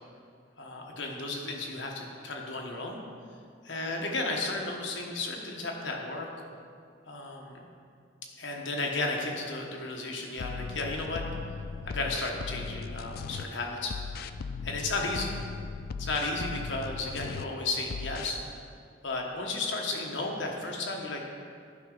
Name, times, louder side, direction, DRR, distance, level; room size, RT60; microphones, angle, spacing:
voice 1, 0.6-3.0 3.6-6.3 7.1-7.6 8.4-11.2 11.8-14.0 14.6-15.3 16.0-18.4 19.0-21.2, left 2 dB, 80° left, 0 dB, 1.2 m, -33 dB
sound 1, 10.4-13.4 13.8-17.4 17.8-18.4, left 5 dB, 55° left, 0.3 m, -38 dB
11.0 x 5.7 x 3.9 m, 2.3 s
head